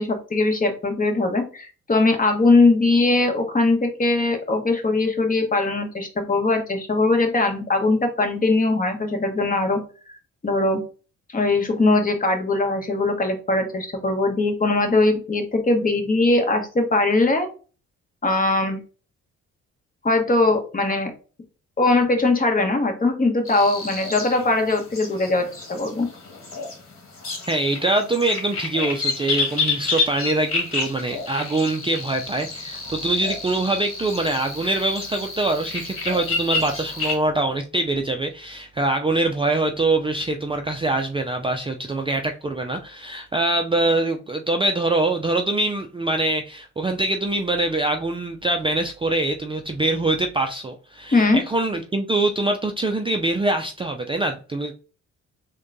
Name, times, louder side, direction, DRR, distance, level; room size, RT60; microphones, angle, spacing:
voice 1, 0.0-9.8 10.1-10.2 10.4-10.8 11.3-17.5 18.2-18.8 20.0-21.1 21.8-26.1 51.1-51.4, left 2 dB, 30° left, 4 dB, 1.1 m, -20 dB
sound 1, 23.4-37.1, left 4 dB, 45° left, 1.5 m, -29 dB
voice 2, 27.5-54.7, right 2 dB, 20° right, 4 dB, 0.4 m, -24 dB
3.6 x 2.3 x 3.8 m, 0.35 s
cardioid pair, 90°, 30 cm